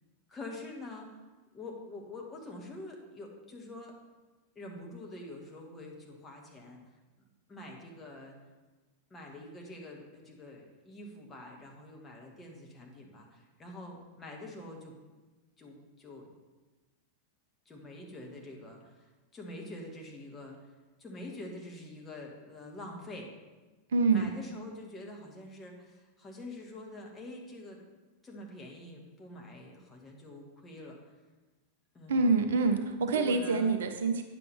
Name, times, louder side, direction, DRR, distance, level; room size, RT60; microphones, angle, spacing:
voice 1, 0.3-1.2 1.5-3.9 4.5-6.8 7.5-8.4 9.1-14.9 15.6-16.3 17.6-20.7 21.0-23.3 24.1-27.8 28.2-31.0 31.9-32.3 33.1-33.8, left 1 dB, 20° left, 0 dB, 1.5 m, -46 dB
voice 2, 23.9-24.3 32.1-34.2, right 4 dB, 60° right, 7 dB, 0.6 m, -26 dB
9.2 x 6.9 x 3.3 m, 1.2 s
figure-of-eight pair, 90°, 0 cm